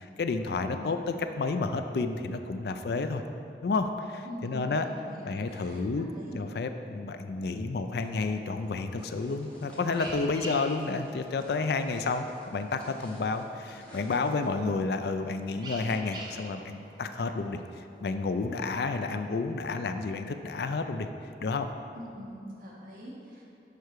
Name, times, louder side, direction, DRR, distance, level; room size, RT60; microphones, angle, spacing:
voice 1, 0.0-3.2 3.6-4.8 5.2-6.1 6.3-12.3 12.5-21.1 21.4-21.7, left 3 dB, 65° left, 8 dB, 0.4 m, -30 dB
voice 2, 0.7-1.0 4.2-6.4 6.7-7.0 22.0-23.4, equal, 50° right, -5 dB, 1.6 m, -44 dB
sound 1, 8.1-19.1, right 1 dB, 25° right, 0.9 m, -48 dB
sound 2, 9.0-14.7, equal, 5° left, 1.4 m, -53 dB
6.7 x 5.6 x 4.6 m, 2.5 s
head